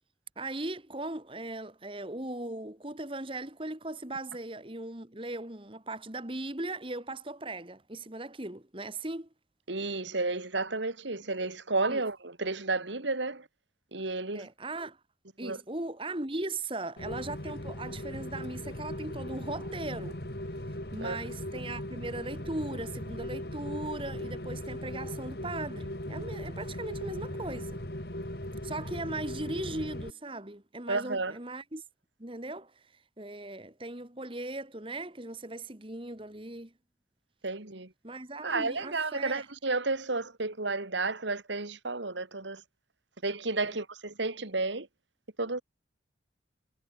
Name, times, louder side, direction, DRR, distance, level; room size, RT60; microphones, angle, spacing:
voice 1, 0.4-9.3 11.9-12.0 14.3-15.0 15.4-20.2 20.9-27.8 28.6-31.8 32.2-32.7 33.2-36.7 38.0-39.5 43.6-43.8, right 2 dB, 25° right, 1.9 m, -38 dB
voice 2, 9.7-13.5 13.9-14.5 15.4-15.6 21.0-21.2 30.9-31.3 37.4-37.9 38.4-42.6 43.2-44.9 45.4-45.6, right 3 dB, 75° right, 2.4 m, -32 dB
Rain, 17.0-30.1, left 1 dB, 55° left, 3.4 m, -38 dB
head